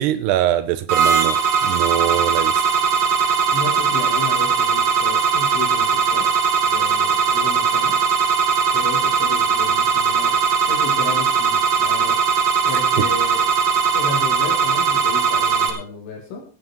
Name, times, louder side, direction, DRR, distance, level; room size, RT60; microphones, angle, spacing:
voice 1, 0.0-1.4 1.6-2.6, right 13 dB, 80° right, 12 dB, 2.5 m, -22 dB
sound 1, 0.9-15.7, right 6 dB, 55° right, 2.1 m, -19 dB
voice 2, 3.5-6.3 6.7-8.0 8.7-10.4 10.7-12.4 12.7-13.4 13.9-16.4, left 4 dB, 85° left, 0 dB, 5.1 m, -32 dB
17.0 x 9.3 x 4.5 m, 0.37 s
omnidirectional pair, 5.3 m